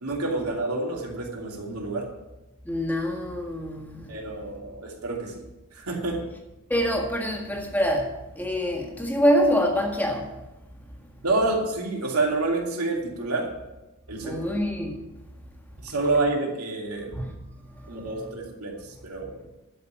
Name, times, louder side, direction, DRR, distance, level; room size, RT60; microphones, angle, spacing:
voice 1, 0.0-2.1 4.1-5.4 5.7-6.2 11.2-13.5 14.1-14.4 15.8-17.1 17.9-19.3, right 2 dB, 90° right, 0 dB, 2.7 m, -28 dB
voice 2, 2.7-4.0 6.7-8.1 8.4-10.2 14.2-15.0 17.1-17.3, equal, 10° left, 1 dB, 1.7 m, -25 dB
12.0 x 5.8 x 8.9 m, 1.0 s
head